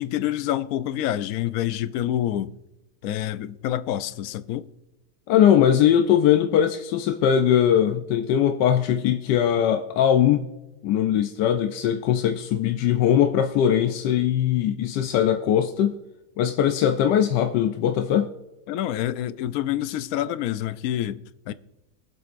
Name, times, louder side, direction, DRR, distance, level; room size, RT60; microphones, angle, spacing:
voice 1, 0.0-2.5 3.0-4.7 18.7-21.5, left 12 dB, 70° left, 0.9 m, -27 dB
voice 2, 5.3-10.5 10.8-16.0 16.4-18.3, left 9 dB, 90° left, 1.3 m, -20 dB
23.5 x 7.9 x 2.5 m
omnidirectional pair, 1.8 m